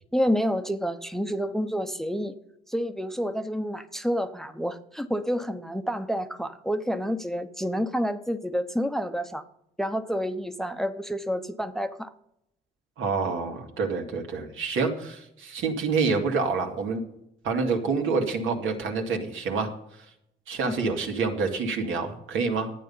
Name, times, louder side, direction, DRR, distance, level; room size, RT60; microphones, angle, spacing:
voice 1, 0.1-2.3 2.7-9.4 9.8-12.1 20.6-20.8, equal, ahead, 9 dB, 0.8 m, -29 dB
voice 2, 13.0-17.0 17.4-19.7 20.5-22.7, right 4 dB, 80° right, 2 dB, 2.2 m, -27 dB
12.0 x 9.2 x 5.5 m, 0.80 s
cardioid pair, 90°, 20 cm